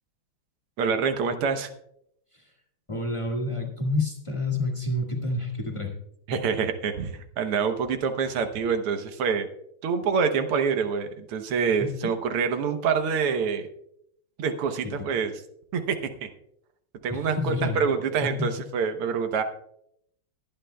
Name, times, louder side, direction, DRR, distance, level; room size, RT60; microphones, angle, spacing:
voice 1, 0.8-1.7 6.3-9.5 9.8-13.6 14.4-15.3 15.7-16.0 17.0-19.4, right 6 dB, 90° right, 7 dB, 1.9 m, -26 dB
voice 2, 2.9-5.9 11.8-12.1 14.8-14.9 17.1-17.8 18.2-18.5, left 2 dB, 15° left, 0 dB, 1.7 m, -29 dB
22.5 x 8.9 x 2.3 m, 0.74 s
omnidirectional pair, 2.4 m